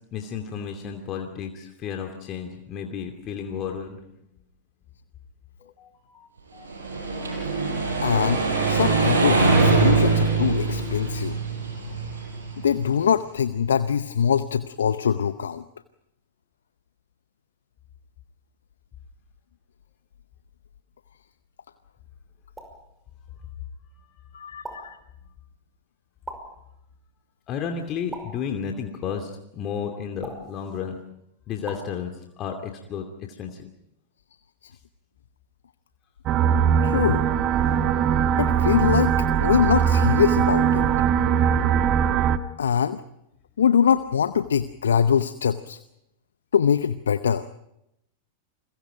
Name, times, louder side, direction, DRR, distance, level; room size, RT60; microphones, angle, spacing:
voice 1, 0.1-4.0 5.6-6.7 27.5-31.0 31.5-33.6, left 7 dB, 35° left, 3 dB, 2.7 m, -33 dB
sound 1, 6.7-12.8, right 4 dB, 80° right, 5.9 m, -23 dB
voice 2, 8.0-11.4 12.6-15.6 24.3-25.0 36.8-37.3 38.4-41.1 42.6-43.0 43.6-45.8 46.5-47.5, left 7 dB, 75° left, 12 dB, 0.7 m, -23 dB
sound 2, 22.6-22.9 24.6-25.0 26.3-26.7 28.1-28.6 30.2-30.6 31.7-32.0, right 2 dB, 10° right, 5.6 m, -39 dB
sound 3, 36.3-42.4, right 8 dB, 40° right, 1.4 m, -21 dB
29.5 x 22.5 x 5.1 m, 0.81 s
figure-of-eight pair, 95°, 0 cm